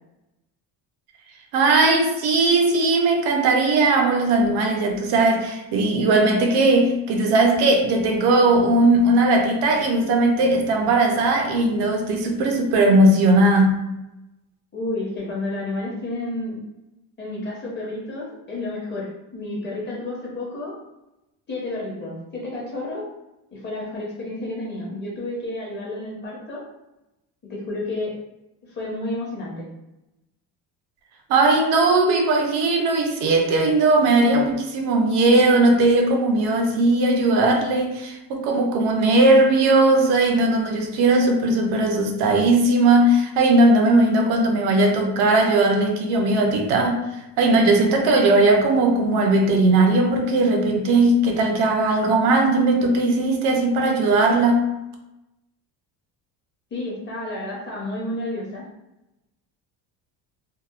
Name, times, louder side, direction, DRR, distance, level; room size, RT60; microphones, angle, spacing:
voice 1, 1.5-13.8 31.3-47.0 47.4-54.6, right 2 dB, 75° right, 3 dB, 0.6 m, -18 dB
voice 2, 14.7-16.6 17.2-20.7 21.5-23.0 23.5-26.6 27.4-28.1 28.7-29.7 56.7-58.7, left 2 dB, 25° left, -4 dB, 0.7 m, -31 dB
2.8 x 2.1 x 2.3 m, 0.95 s
cardioid pair, 160°, 40 cm